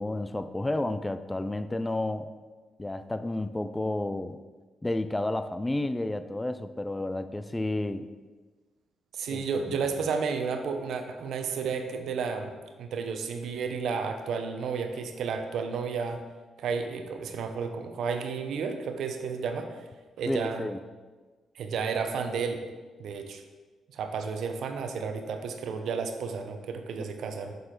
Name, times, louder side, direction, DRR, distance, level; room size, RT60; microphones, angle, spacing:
voice 1, 0.0-2.3 2.8-4.4 4.8-8.1 9.3-9.6 20.3-20.8, left 2 dB, 15° left, 12 dB, 0.4 m, -31 dB
voice 2, 9.1-16.2 16.6-19.8 20.2-20.7 21.5-22.6 23.0-23.4 23.9-27.5, right 5 dB, 75° right, 6 dB, 0.7 m, -32 dB
6.6 x 6.5 x 3.8 m, 1.3 s
cardioid pair, 85°, 0 cm